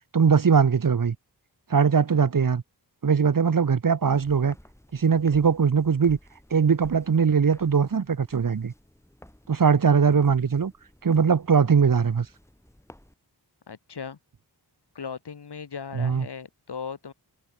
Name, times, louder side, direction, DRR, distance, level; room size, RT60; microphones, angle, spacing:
voice 1, 0.1-1.1 1.7-2.6 3.0-4.5 4.9-6.2 6.5-8.7 9.5-10.7 11.0-12.3 15.9-16.3, right 6 dB, 55° right, 1.4 m, -21 dB
Walk footsteps, 4.1-13.1, left 1 dB, 5° left, 7.4 m, -53 dB
voice 2, 13.7-14.2 15.0-17.1, left 6 dB, 75° left, 3.4 m, -37 dB
wide cardioid pair, 110°, 40 cm